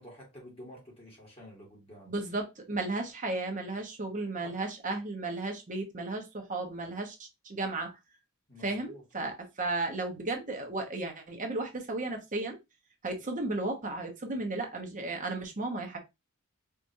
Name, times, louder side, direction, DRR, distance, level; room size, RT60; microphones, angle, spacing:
voice 1, 0.0-2.1 4.4-4.6 8.5-9.0, equal, 30° left, 1.5 m, -50 dB
voice 2, 2.1-7.2 7.4-7.9 8.6-12.6 13.0-16.0, right 2 dB, 40° right, 1.0 m, -34 dB
4.6 x 2.5 x 2.7 m
head